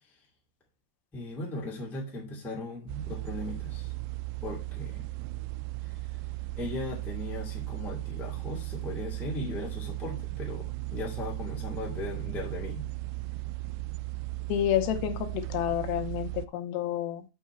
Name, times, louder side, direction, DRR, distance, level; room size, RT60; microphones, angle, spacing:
voice 1, 1.1-3.9 4.4-5.0 6.6-10.6 10.9-12.9, left 2 dB, ahead, -3 dB, 0.8 m, -37 dB
sound 1, 2.9-16.5, right 20 dB, 85° right, 2.6 m, -36 dB
voice 2, 14.5-17.2, left 11 dB, 85° left, 7 dB, 3.0 m, -29 dB
7.1 x 5.6 x 4.4 m, 0.28 s
omnidirectional pair, 4.9 m